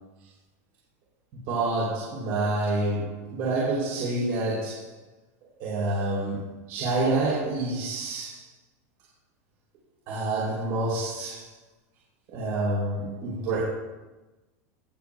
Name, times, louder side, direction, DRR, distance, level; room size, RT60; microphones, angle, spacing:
voice 1, 1.5-4.9 5.6-8.4 10.1-11.5 12.3-13.6, right 2 dB, 50° right, -7 dB, 3.3 m, -28 dB
18.0 x 7.8 x 2.3 m, 1.1 s
supercardioid pair, 145°, 9 cm